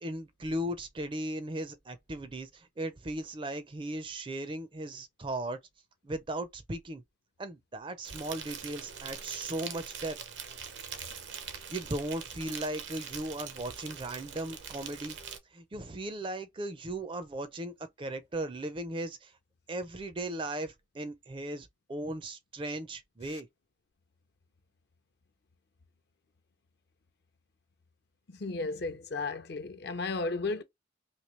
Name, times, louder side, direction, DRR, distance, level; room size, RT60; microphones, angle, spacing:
voice 1, 0.0-5.6 6.0-7.0 7.4-10.2 11.5-15.2 15.5-19.3 19.7-23.5, right 1 dB, 25° right, 0.4 m, -37 dB
Insect, 8.0-15.4, right 7 dB, 75° right, 0.7 m, -43 dB
voice 2, 28.3-30.6, left 3 dB, 60° left, 0.6 m, -34 dB
3.0 x 2.7 x 3.0 m
head